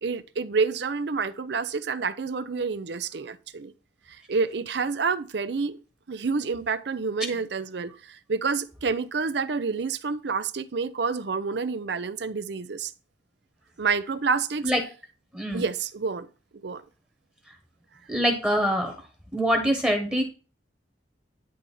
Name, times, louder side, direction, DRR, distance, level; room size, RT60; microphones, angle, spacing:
voice 1, 0.0-3.7 4.1-5.8 6.1-12.9 13.8-14.7 15.5-16.3 16.6-16.8, right 5 dB, 65° right, 0.6 m, -28 dB
voice 2, 15.3-15.6 18.1-18.9 19.3-20.2, equal, 5° right, 1.2 m, -24 dB
10.0 x 3.4 x 5.3 m
head